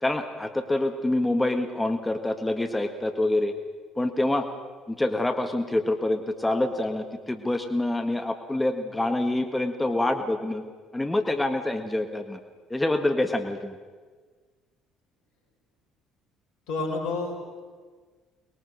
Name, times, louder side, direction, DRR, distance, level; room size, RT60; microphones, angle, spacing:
voice 1, 0.0-3.5 4.0-4.5 4.9-10.6 10.9-12.4 12.7-13.8, left 1 dB, 10° left, 6 dB, 1.6 m, -26 dB
voice 2, 16.7-17.6, left 3 dB, 70° left, 3 dB, 4.6 m, -30 dB
23.0 x 21.0 x 6.5 m, 1.5 s
hypercardioid pair, 55°, 0 cm